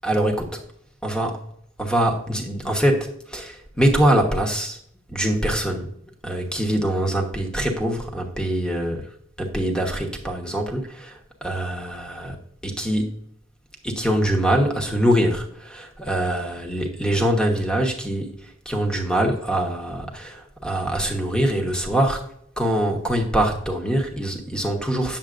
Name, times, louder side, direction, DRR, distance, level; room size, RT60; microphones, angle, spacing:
voice 1, 0.0-0.6 1.0-1.4 1.8-4.8 5.1-5.9 6.2-9.1 9.4-12.4 12.6-13.2 13.8-22.3 22.6-25.2, right 1 dB, 5° left, 2 dB, 1.1 m, -23 dB
8.8 x 7.0 x 2.5 m, 0.67 s
head